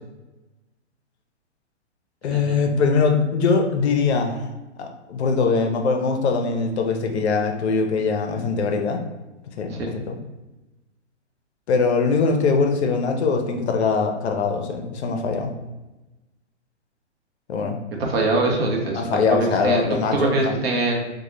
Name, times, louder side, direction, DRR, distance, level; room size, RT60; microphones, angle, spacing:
voice 1, 2.2-4.5 4.8-9.0 9.6-10.2 11.7-15.5 17.5-17.8 18.9-20.5, left 4 dB, 65° left, 4 dB, 0.5 m, -22 dB
voice 2, 18.0-19.9 20.1-21.1, right 2 dB, 55° right, 0 dB, 0.7 m, -23 dB
2.1 x 2.0 x 3.0 m, 1.1 s
hypercardioid pair, 145°, 36 cm